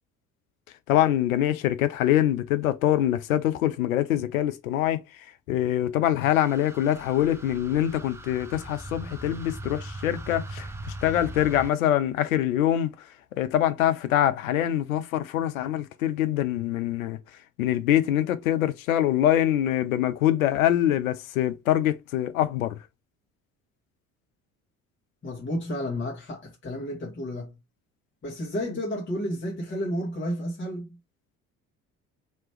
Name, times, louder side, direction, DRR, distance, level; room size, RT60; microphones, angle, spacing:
voice 1, 0.9-5.0 5.5-10.7 11.0-12.9 13.4-17.2 17.6-22.8, left 12 dB, 75° left, 0.6 m, -24 dB
sound 1, 6.2-11.7, right 1 dB, 5° right, 0.3 m, -40 dB
voice 2, 25.2-27.5 28.2-31.0, equal, 25° left, 1.4 m, -31 dB
3.0 x 2.9 x 3.2 m
figure-of-eight pair, 55°, 42 cm